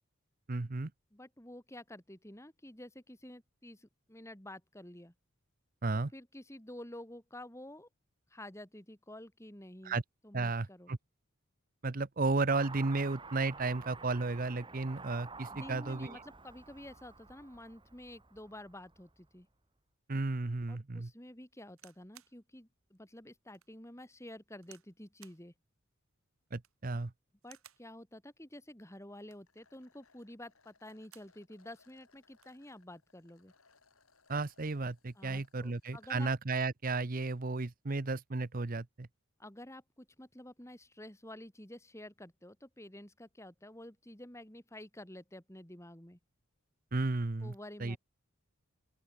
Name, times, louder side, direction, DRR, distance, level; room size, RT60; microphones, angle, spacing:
voice 1, 0.5-0.9 5.8-6.1 9.8-10.0 10.3-11.0 11.8-16.2 20.1-21.1 26.5-27.1 34.3-39.1 46.9-47.5 47.8-48.0, right 3 dB, 40° right, 0.8 m, -33 dB
voice 2, 1.1-5.1 6.1-7.9 8.3-10.0 10.2-10.9 15.5-19.5 20.7-25.5 27.4-33.5 35.2-36.3 39.4-46.2 47.4-48.0, left 1 dB, 15° left, 2.3 m, -50 dB
Car passing by / Accelerating revving vroom, 12.5-19.1, right 4 dB, 20° right, 3.2 m, -50 dB
sound 1, 21.8-22.4 23.0-23.1 23.5-23.7 24.6-24.9 25.2-25.4 26.5-26.9 27.4-27.9 29.1-29.6 30.7-31.4 31.8-31.9 32.1-32.6 33.4-33.7, right 11 dB, 80° right, 6.6 m, -60 dB
sound 2, 29.5-36.1, left 4 dB, 80° left, 7.5 m, -69 dB
open air
head